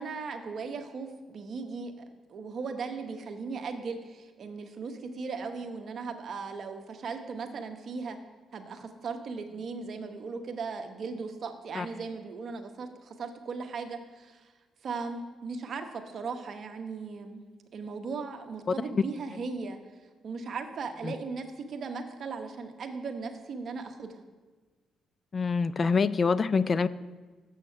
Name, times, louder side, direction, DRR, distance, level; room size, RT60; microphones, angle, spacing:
voice 1, 0.0-8.2 8.5-14.5 14.8-17.4 17.7-19.8 20.2-24.2, right 4 dB, 55° right, 6 dB, 1.0 m, -37 dB
voice 2, 25.3-26.9, left 5 dB, 40° left, 17 dB, 0.3 m, -25 dB
7.2 x 6.2 x 6.7 m, 1.3 s
cardioid pair, 90°, 0 cm